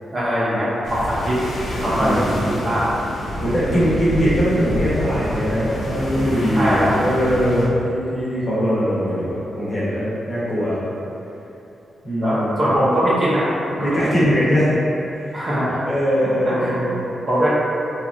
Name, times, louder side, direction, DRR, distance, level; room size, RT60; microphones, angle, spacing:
voice 1, 0.1-1.4 1.7-2.9 3.7-3.8 6.6-6.9 12.2-14.1 15.3-15.8 16.4-16.9 17.3-17.5, equal, 30° right, -9 dB, 0.5 m, -21 dB
sound 1, 0.8-7.7, equal, 65° left, 0.5 m, -28 dB
voice 2, 1.9-2.6 3.4-10.8 12.0-12.6 13.8-14.7 15.1-15.4 15.8-17.0, equal, 30° left, -10 dB, 0.7 m, -21 dB
2.9 x 2.3 x 2.4 m, 2.8 s
wide cardioid pair, 180°, 0 cm